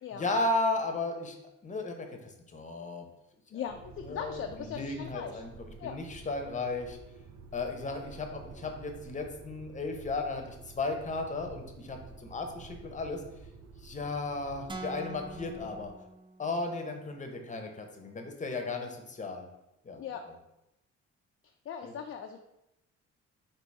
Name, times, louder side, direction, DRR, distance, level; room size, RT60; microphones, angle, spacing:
voice 1, 0.1-1.4 1.6-2.1 2.5-3.1 4.1-7.0 7.5-13.2 13.8-15.9 16.4-19.5 19.8-20.0 21.8-21.9, left 2 dB, 25° left, 4 dB, 0.8 m, -35 dB
voice 2, 3.5-5.4 5.8-6.0 20.0-20.2 21.7-22.4, left 8 dB, 45° left, 4 dB, 0.4 m, -39 dB
sound 1, 3.7-15.9, right 4 dB, 65° right, 0.6 m, -50 dB
sound 2, 14.7-16.8, right 2 dB, 15° right, 0.5 m, -44 dB
4.0 x 2.7 x 4.7 m, 0.88 s
cardioid pair, 90°, 30 cm